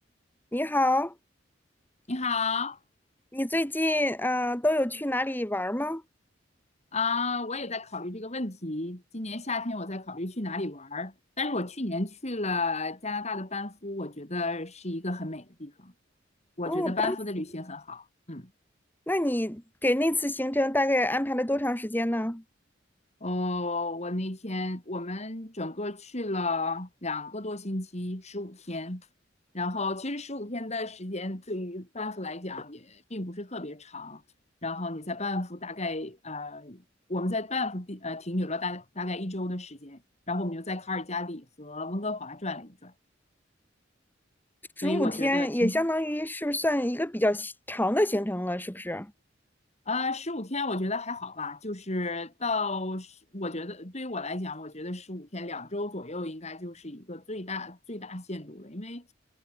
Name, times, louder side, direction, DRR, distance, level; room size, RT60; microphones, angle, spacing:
voice 1, 0.5-1.1 3.3-6.0 16.7-17.1 19.1-22.4 44.8-49.1, left 1 dB, 10° left, 2.8 m, -27 dB
voice 2, 2.1-2.8 6.9-15.9 16.6-18.5 23.2-29.1 29.5-34.2 34.6-36.8 37.1-40.0 40.3-42.9 44.8-45.7 49.9-59.1, left 2 dB, 35° left, 4.8 m, -33 dB
head